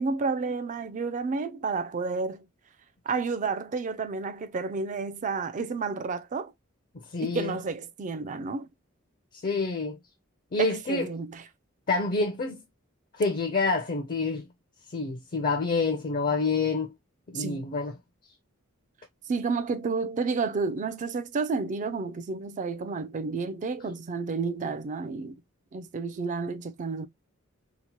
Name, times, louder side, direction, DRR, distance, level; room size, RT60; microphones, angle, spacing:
voice 1, 0.0-2.5 3.1-6.5 7.2-8.7 10.6-11.4 17.3-17.6 19.3-25.4 25.7-27.1, right 4 dB, 35° right, 0.4 m, -31 dB
voice 2, 7.1-7.5 9.4-10.0 10.5-11.1 11.9-12.6 13.2-14.4 14.9-16.9 17.3-17.9, left 4 dB, 40° left, 0.5 m, -27 dB
2.8 x 2.1 x 2.9 m
head